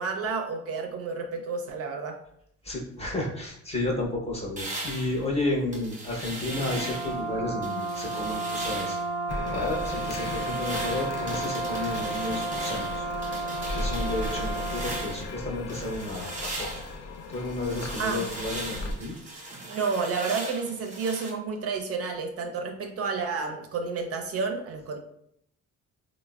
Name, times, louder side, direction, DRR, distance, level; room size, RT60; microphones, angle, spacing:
voice 1, 0.0-2.2 18.0-18.2 19.7-25.0, right 4 dB, 50° right, 3 dB, 0.4 m, -30 dB
voice 2, 2.6-9.0 9.4-13.1 13.7-16.7 17.3-19.1, left 2 dB, 20° left, -2 dB, 0.7 m, -32 dB
sound 1, 4.6-7.2 7.6-9.1 9.5-15.3 15.7-21.3, right 2 dB, 25° right, 0.8 m, -39 dB
Brass instrument, 6.5-15.2, right 3 dB, 85° left, 0.8 m, -33 dB
sound 2, 9.3-18.9, left 2 dB, 55° left, 0.4 m, -36 dB
3.2 x 2.0 x 2.3 m, 0.71 s
cardioid pair, 90°, 30 cm